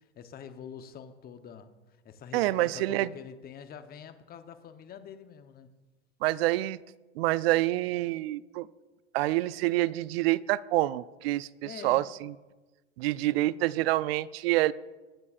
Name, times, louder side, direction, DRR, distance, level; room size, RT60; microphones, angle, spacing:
voice 1, 0.0-5.7 11.6-12.1, left 7 dB, 25° left, 0.9 m, -45 dB
voice 2, 2.3-3.1 6.2-6.8 7.2-8.7 9.1-12.3 13.0-14.7, right 17 dB, 55° right, 0.5 m, -27 dB
21.5 x 9.5 x 2.5 m
hypercardioid pair, 95°, 36 cm